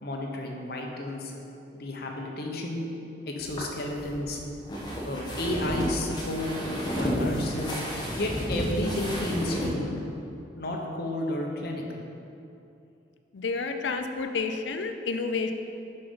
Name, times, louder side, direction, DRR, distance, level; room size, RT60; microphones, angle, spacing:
voice 1, 0.0-1.3 1.7-2.9 3.3-4.4 5.0-6.5 7.0-7.7 8.2-10.0 10.6-12.0, left 1 dB, 60° left, 0 dB, 1.0 m, -32 dB
sound 1, 3.4-9.7, equal, 25° left, 1.2 m, -32 dB
voice 2, 13.3-15.5, left 4 dB, 90° left, 6 dB, 0.5 m, -30 dB
6.7 x 5.5 x 5.5 m, 2.7 s
head